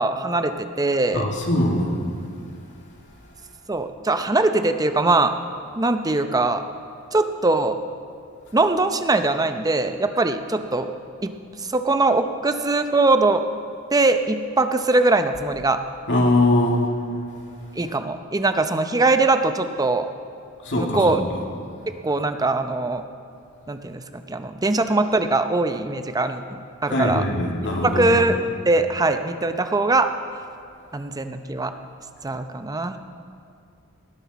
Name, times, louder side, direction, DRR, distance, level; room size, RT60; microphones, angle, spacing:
voice 1, 0.0-1.2 3.7-5.3 5.8-6.6 7.1-7.8 8.5-10.9 11.2-11.3 11.6-13.4 13.9-15.8 17.8-20.1 20.8-21.2 22.0-23.0 23.7-27.2 27.8-28.4 28.7-30.1 30.9-31.7 32.2-33.0, right 2 dB, 15° right, 8 dB, 0.6 m, -21 dB
voice 2, 1.1-1.9 16.1-16.8 20.6-21.2 26.9-28.1, left 1 dB, 55° left, 0 dB, 2.3 m, -21 dB
19.0 x 12.0 x 4.1 m, 2.5 s
head